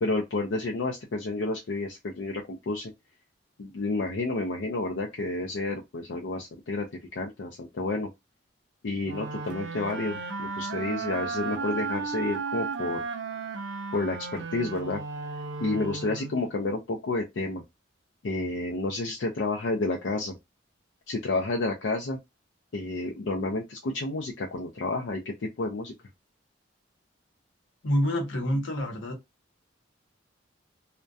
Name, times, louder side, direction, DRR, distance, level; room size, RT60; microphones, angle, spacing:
voice 1, 0.0-2.9 3.6-6.9 7.1-8.1 8.8-13.0 13.9-15.0 15.6-17.6 18.2-20.4 21.1-22.2 22.7-25.9, left 2 dB, 65° left, 0.4 m, -30 dB
sound 1, 9.0-16.5, right 4 dB, 65° right, 0.5 m, -34 dB
voice 2, 27.8-29.2, equal, 80° left, 0.8 m, -27 dB
2.3 x 2.1 x 2.5 m
head